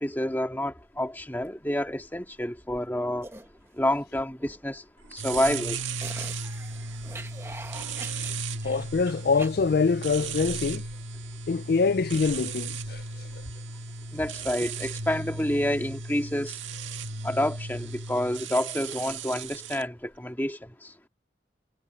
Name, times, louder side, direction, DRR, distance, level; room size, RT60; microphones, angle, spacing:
voice 1, 0.0-3.3 3.8-4.8 5.1-5.8 14.1-16.6 17.2-20.6, left 1 dB, 10° left, 2.0 m, -28 dB
sound 1, 0.8-9.5, right 2 dB, 15° right, 1.2 m, -45 dB
sound 2, 5.1-19.8, right 4 dB, 85° right, 1.9 m, -36 dB
voice 2, 8.6-10.8 11.5-13.4, left 4 dB, 55° left, 0.4 m, -25 dB
head